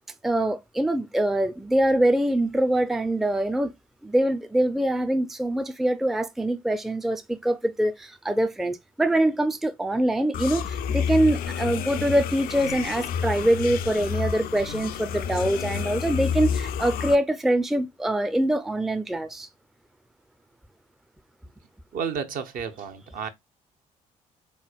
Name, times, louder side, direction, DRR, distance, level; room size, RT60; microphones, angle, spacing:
voice 1, 0.2-3.7 4.0-19.5, right 1 dB, ahead, 0.4 m, -24 dB
sound 1, 10.3-17.2, left 7 dB, 55° left, 0.4 m, -29 dB
voice 2, 21.9-23.3, right 7 dB, 50° right, 0.7 m, -31 dB
3.9 x 3.0 x 2.3 m
figure-of-eight pair, 45°, 18 cm